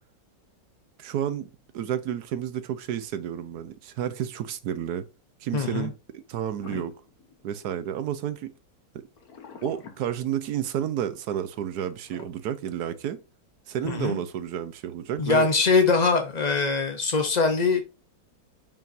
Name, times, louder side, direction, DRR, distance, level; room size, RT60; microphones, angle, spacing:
voice 1, 1.0-5.1 5.4-6.9 7.4-8.5 8.9-9.0 9.6-13.2 13.7-15.5, right 10 dB, 65° right, 1.1 m, -31 dB
voice 2, 5.5-5.9 13.8-14.2 15.2-17.8, left 4 dB, 70° left, 0.4 m, -22 dB
sound 1, 6.6-8.0 9.2-10.8 12.1-12.3, left 5 dB, 55° left, 1.7 m, -44 dB
7.0 x 5.8 x 2.7 m
omnidirectional pair, 2.0 m